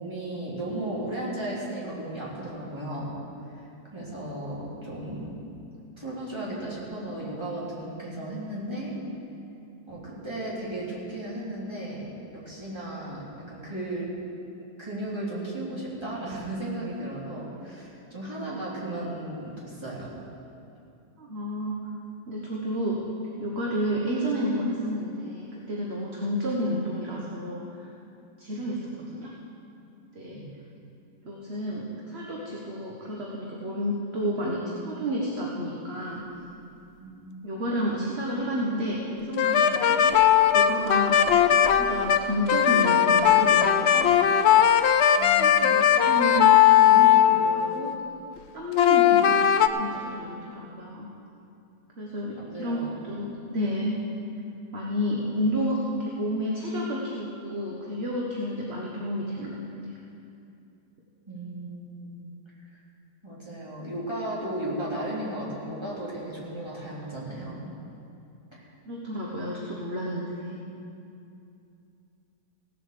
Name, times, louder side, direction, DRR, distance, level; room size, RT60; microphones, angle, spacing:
voice 1, 0.0-3.1 3.5-3.7 3.9-5.3 6.0-8.9 9.9-12.1 12.3-14.1 14.8-20.1 28.6-28.8 30.3-30.5 37.0-37.2 45.2-45.5 52.4-53.0 61.3-62.2 63.2-67.6 68.5-68.7, right 1 dB, 15° right, -7 dB, 3.2 m, -35 dB
voice 2, 21.2-21.7 22.3-23.0 23.4-27.9 28.4-28.8 29.1-29.3 30.1-30.4 31.2-36.2 37.4-40.2 40.5-41.2 41.5-44.2 45.4-48.0 48.5-49.4 49.8-51.1 52.0-54.0 54.7-59.6 59.8-59.9 68.8-70.6, equal, 40° right, -3 dB, 1.5 m, -31 dB
sound 1, 39.4-47.9 48.8-49.7, left 9 dB, 90° left, 0.5 m, -19 dB
16.5 x 8.1 x 6.8 m, 2.6 s
omnidirectional pair, 1.8 m